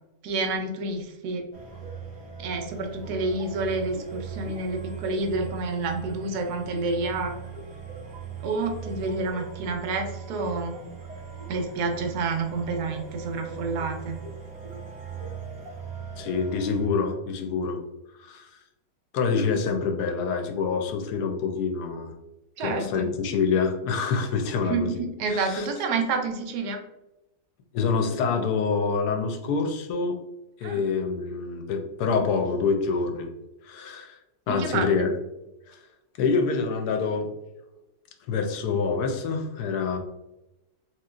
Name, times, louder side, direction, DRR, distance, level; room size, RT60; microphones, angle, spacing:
voice 1, 0.2-1.5 2.4-7.4 8.4-10.8 11.5-14.2 22.6-23.1 24.7-26.8 30.6-30.8 34.5-35.1, right 3 dB, 80° right, 4 dB, 1.2 m, -29 dB
sound 1, 1.5-16.9, right 6 dB, 30° right, 0.7 m, -39 dB
voice 2, 16.2-17.8 18.2-18.5 19.1-22.1 22.6-25.0 25.3-25.7 27.7-30.2 30.6-33.3 33.6-34.2 34.5-35.1 35.7-35.8 36.2-37.3 38.3-40.0, left 5 dB, 80° left, 5 dB, 1.1 m, -26 dB
3.0 x 2.9 x 2.4 m, 0.95 s
omnidirectional pair, 1.7 m